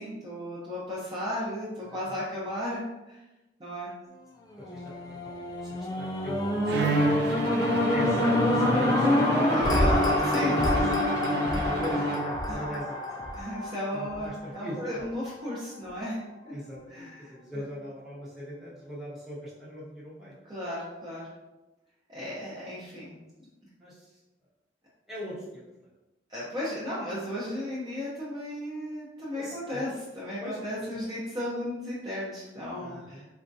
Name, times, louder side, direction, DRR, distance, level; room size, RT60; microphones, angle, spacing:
voice 1, 0.0-3.2 3.6-3.9 9.5-11.0 12.5-12.6 13.3-16.5 16.9-17.3 20.4-21.3 22.1-23.2 26.3-33.2, left 1 dB, 25° right, -8 dB, 0.7 m, -35 dB
voice 2, 1.8-2.3 4.6-10.8 11.1-13.0 13.9-15.0 16.5-20.4 23.8-24.1 25.1-25.6 29.3-29.8 30.4-30.9 32.8-33.3, equal, ahead, -9 dB, 1.0 m, -40 dB
sound 1, 4.6-14.9 15.4-15.5, left 1 dB, 20° left, 0.3 m, -27 dB
Bowed string instrument, 6.7-12.7, right 1 dB, 70° right, 0.4 m, -29 dB
4.3 x 2.3 x 2.6 m, 1.0 s
head